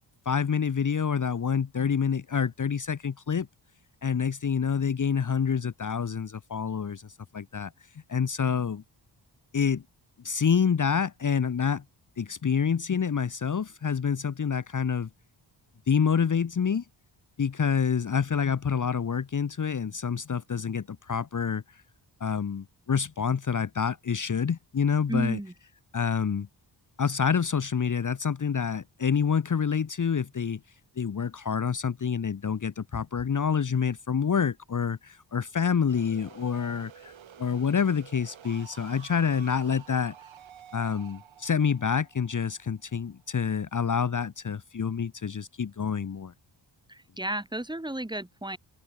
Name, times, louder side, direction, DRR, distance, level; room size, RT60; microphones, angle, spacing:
voice 1, 0.2-3.5 4.0-7.7 8.1-8.8 9.5-9.8 10.2-11.8 12.2-15.1 15.9-16.8 17.4-21.8 22.2-25.4 25.9-26.5 27.0-30.6 31.0-37.1 37.4-40.1 40.7-46.3, left 6 dB, 40° left, 1.4 m, -27 dB
voice 2, 25.1-25.5 46.9-48.6, right 1 dB, 10° right, 5.0 m, -32 dB
sound 1, 35.6-43.4, right 9 dB, 90° right, 4.1 m, -51 dB
open air
wide cardioid pair, 110°, 45 cm